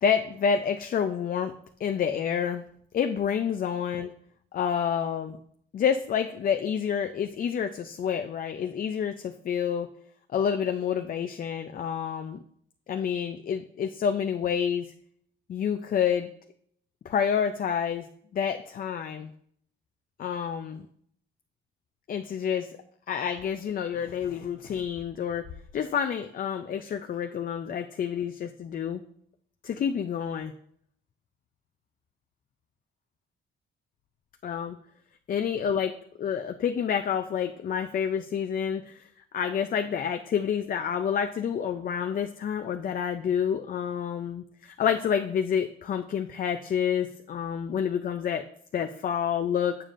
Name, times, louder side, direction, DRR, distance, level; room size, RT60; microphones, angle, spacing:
voice 1, 0.0-1.5 1.8-2.6 2.9-4.1 4.5-5.4 5.7-9.9 10.3-12.4 12.9-14.9 15.5-16.3 17.0-18.1 18.3-19.3 20.2-20.9 22.1-22.7 23.1-25.5 25.7-29.0 29.6-30.5 34.4-34.8 35.3-35.9 36.2-39.1 39.3-48.4 48.7-49.8, left 8 dB, 45° left, 6 dB, 0.4 m, -28 dB
7.2 x 6.7 x 2.5 m, 0.65 s
cardioid pair, 90°, 20 cm